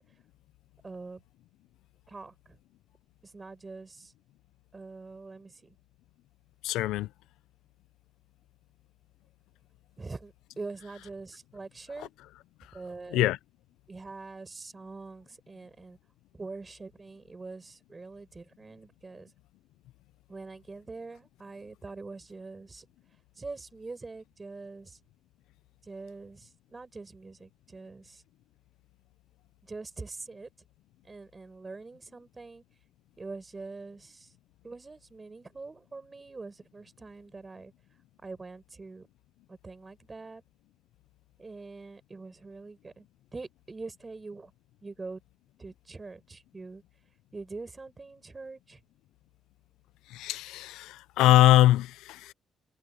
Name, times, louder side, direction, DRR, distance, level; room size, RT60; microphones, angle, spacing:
voice 1, 0.8-1.2 2.1-2.6 3.2-4.1 4.7-5.8 10.0-12.1 12.7-13.3 13.9-16.0 16.3-19.3 20.3-22.9 23.4-25.0 25.8-28.2 29.6-30.5 31.0-32.6 33.2-34.3 34.6-37.7 38.2-39.1 39.5-40.4 41.4-43.1 43.3-44.5 44.8-45.2 45.6-46.8 47.3-48.8, right 3 dB, 30° right, 7.7 m, -44 dB
voice 2, 6.6-7.1 13.1-13.4 50.1-52.3, left 15 dB, 85° left, 0.6 m, -22 dB
supercardioid pair, 60°, 0 cm